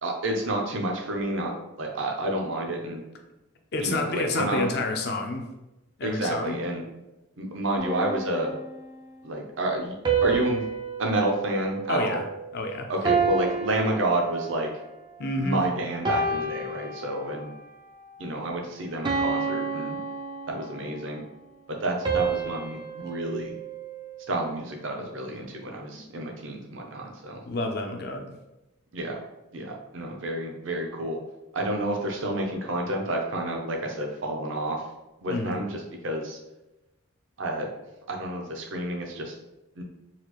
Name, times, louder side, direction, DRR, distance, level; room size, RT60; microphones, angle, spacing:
voice 1, 0.0-3.0 3.8-4.7 6.0-6.8 7.4-8.6 9.2-9.9 10.2-10.6 11.0-12.2 12.9-14.7 15.4-17.5 18.2-20.0 20.5-21.2 21.7-23.5 24.3-27.4 28.9-29.2 29.5-31.2 31.5-34.8 35.2-36.4 37.4-37.7 38.1-39.3 39.8-39.9, right 1 dB, 65° right, 1 dB, 0.7 m, -29 dB
voice 2, 3.7-5.5 6.0-6.6 11.9-12.2 12.5-12.9 15.2-15.6 25.9-26.0 27.4-28.3 35.3-35.7, left 2 dB, 50° left, 4 dB, 0.5 m, -29 dB
sound 1, 7.8-9.1 10.0-12.6 13.0-14.8 15.3-15.6 16.0-17.6 18.1-18.3 19.0-20.9 22.0-24.4, right 5 dB, 20° right, 0.3 m, -30 dB
4.1 x 2.4 x 3.0 m, 0.97 s
head